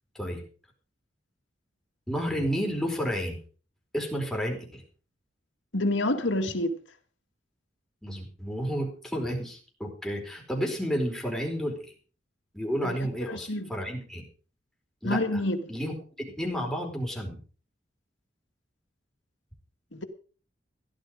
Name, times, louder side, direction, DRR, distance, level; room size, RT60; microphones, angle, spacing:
voice 1, 2.1-3.4 3.9-4.8 8.0-11.9 12.5-14.2 15.0-15.4 15.7-15.9 16.4-17.4, equal, ahead, 4.7 m, -31 dB
voice 2, 5.7-6.8 12.8-13.7 15.0-15.7 19.9-20.0, left 1 dB, 80° left, 2.2 m, -28 dB
16.0 x 12.0 x 5.1 m
head